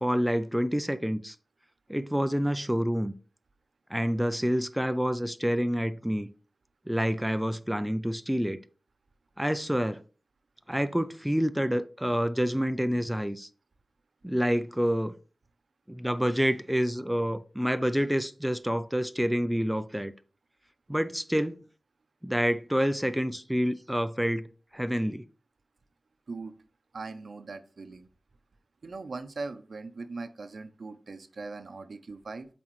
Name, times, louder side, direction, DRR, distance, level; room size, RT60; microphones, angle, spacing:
voice 1, 0.0-1.4 1.9-3.1 3.9-6.3 6.9-8.6 9.4-10.0 10.7-13.5 14.2-15.1 15.9-20.1 20.9-21.5 22.2-24.5 24.7-25.2, equal, 5° right, 0.3 m, -28 dB
voice 2, 26.9-28.1 28.8-32.5, right 3 dB, 70° right, 0.6 m, -40 dB
7.4 x 4.2 x 3.1 m
wide cardioid pair, 70°, 0 cm